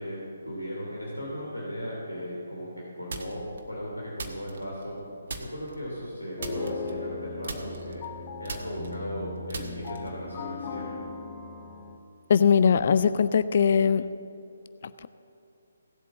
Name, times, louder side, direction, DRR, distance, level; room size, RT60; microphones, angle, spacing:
voice 1, 0.0-5.0 5.4-8.1 8.4-11.0, equal, 90° left, -4 dB, 3.1 m, -37 dB
sound 1, 3.1-3.6 4.2-5.0 5.3-5.8 6.4-7.2 7.4-10.2, right 3 dB, 55° right, 1.4 m, -39 dB
sound 2, 6.4-12.0, left 4 dB, 30° left, 1.2 m, -38 dB
voice 2, 12.3-14.1, left 6 dB, 45° left, 14 dB, 0.4 m, -20 dB
17.5 x 8.3 x 7.3 m, 2.7 s
figure-of-eight pair, 140°, 0 cm